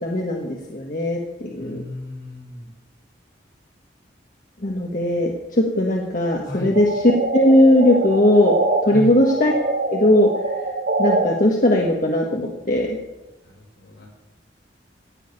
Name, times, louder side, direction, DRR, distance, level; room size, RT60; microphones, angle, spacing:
voice 1, 0.0-1.8 4.6-8.5 8.8-9.5 9.9-10.3 11.0-13.0, left 1 dB, 45° left, 0 dB, 1.5 m, -18 dB
voice 2, 1.6-2.7 6.5-6.8 8.9-9.1 13.4-14.1, left 1 dB, 75° left, -2 dB, 5.5 m, -34 dB
sound 1, 6.7-8.8 9.2-11.2, right 2 dB, 65° right, 2.3 m, -24 dB
16.5 x 6.6 x 8.7 m, 1.1 s
head